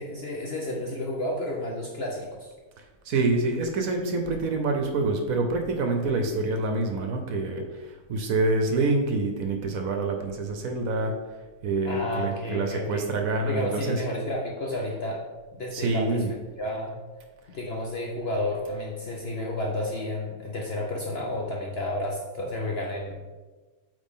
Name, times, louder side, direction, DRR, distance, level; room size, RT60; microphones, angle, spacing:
voice 1, 0.0-2.5 11.8-13.1 13.4-15.3 15.5-16.2 16.6-17.0 17.5-23.1, left 1 dB, 55° left, -2 dB, 0.7 m, -31 dB
voice 2, 2.8-11.1 11.6-14.0 15.7-16.3, right 3 dB, 65° right, 4 dB, 1.0 m, -26 dB
8.3 x 3.2 x 3.6 m, 1.3 s
omnidirectional pair, 1.7 m